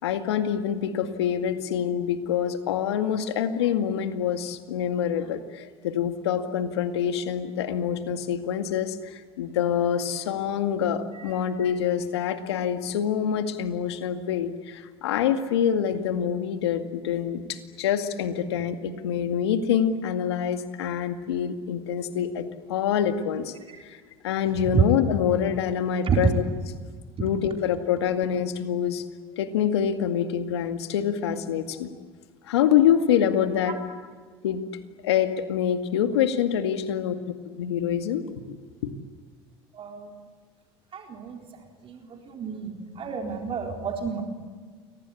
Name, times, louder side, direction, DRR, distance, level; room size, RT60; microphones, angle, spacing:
voice 1, 0.0-23.5 23.8-26.3 27.2-29.0 29.4-31.9 32.5-33.8 34.4-34.6 35.0-37.1 37.4-38.6 38.8-38.9, left 9 dB, 85° left, 7 dB, 2.1 m, -26 dB
voice 2, 39.7-40.2 40.9-41.4 41.8-44.2, right 6 dB, 45° right, 1 dB, 4.1 m, -28 dB
29.5 x 23.5 x 8.6 m, 1.5 s
hypercardioid pair, 75°, 13 cm